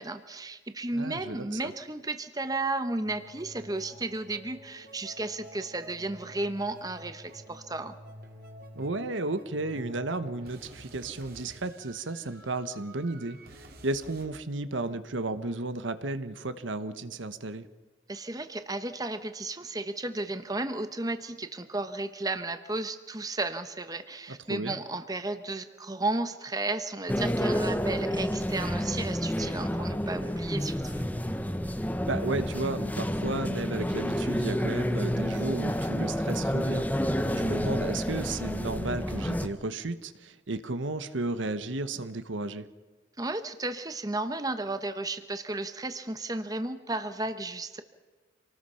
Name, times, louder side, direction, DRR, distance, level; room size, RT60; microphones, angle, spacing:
voice 1, 0.0-8.0 18.1-31.0 43.2-47.8, right 2 dB, 20° right, 9 dB, 1.0 m, -33 dB
voice 2, 0.9-1.7 8.7-17.7 24.5-24.8 32.1-42.7, right 2 dB, 75° right, 12 dB, 1.1 m, -33 dB
sound 1, 3.0-14.3, equal, 50° right, 2.8 m, -49 dB
sound 2, 27.1-39.5, equal, 10° left, 1.0 m, -29 dB
27.0 x 19.5 x 5.7 m, 1.3 s
head